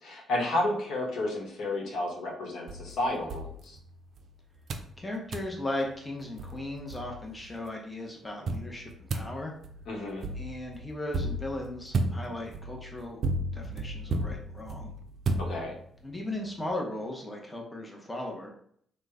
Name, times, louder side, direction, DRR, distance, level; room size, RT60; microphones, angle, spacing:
voice 1, 0.0-3.8 9.9-10.3 15.4-15.7, left 1 dB, 75° left, -2 dB, 0.9 m, -31 dB
sound 1, 2.7-4.2 4.7-5.0 5.3-5.6 6.1-6.2 6.4-7.5 8.5-16.0, right 2 dB, 60° right, 0.4 m, -34 dB
voice 2, 5.0-9.5 10.3-13.2 13.5-14.9 16.0-18.5, left 1 dB, 15° left, -1 dB, 0.8 m, -37 dB
3.0 x 2.1 x 3.5 m, 0.64 s
cardioid pair, 75°, 0 cm